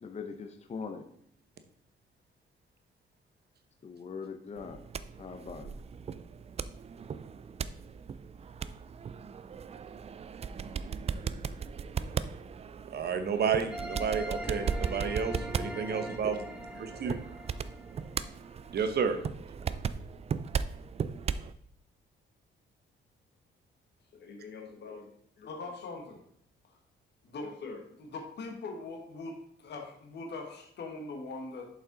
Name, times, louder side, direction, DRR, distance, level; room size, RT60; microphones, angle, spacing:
voice 1, 0.0-1.0 3.8-4.8 5.2-5.7, left 5 dB, 35° left, 5 dB, 0.7 m, -41 dB
sound 1, 4.6-21.5, right 6 dB, 30° right, 0.4 m, -37 dB
voice 2, 12.9-16.5 16.7-17.2 18.7-19.2, right 6 dB, 55° right, 8 dB, 0.9 m, -31 dB
sound 2, 13.7-18.5, right 1 dB, 5° right, 1.2 m, -41 dB
voice 3, 24.1-25.1 25.4-26.2 27.2-31.7, left 3 dB, 60° left, 2 dB, 1.6 m, -42 dB
7.6 x 5.3 x 3.9 m, 0.70 s
cardioid pair, 90°, 20 cm